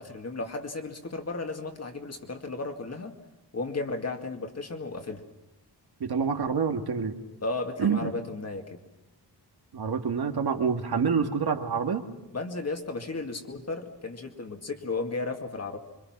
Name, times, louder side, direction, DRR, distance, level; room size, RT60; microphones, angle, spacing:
voice 1, 0.0-3.1 3.5-5.2 7.4-8.8 12.3-15.8, left 3 dB, 35° left, 4 dB, 2.3 m, -34 dB
voice 2, 6.0-7.1 7.8-8.1 9.7-12.0, right 6 dB, 60° right, 4 dB, 2.0 m, -27 dB
26.0 x 25.0 x 6.0 m, 1.0 s
wide cardioid pair, 170°, 42 cm